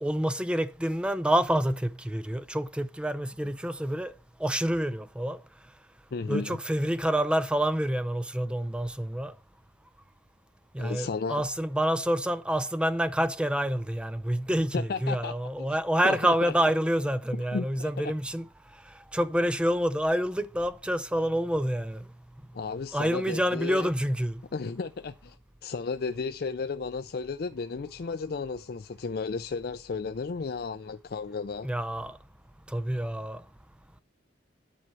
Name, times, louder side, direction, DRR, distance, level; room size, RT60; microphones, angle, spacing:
voice 1, 0.0-4.1 4.4-5.4 6.3-9.3 10.7-18.5 18.9-22.1 22.9-24.4 31.6-32.2 32.7-33.4, equal, 5° right, 0.4 m, -28 dB
voice 2, 6.1-6.6 10.8-11.4 14.7-15.7 16.0-16.5 17.5-18.1 22.5-23.9 24.5-25.4 25.6-31.7, left 4 dB, 55° left, 0.4 m, -34 dB
10.0 x 4.5 x 6.2 m
head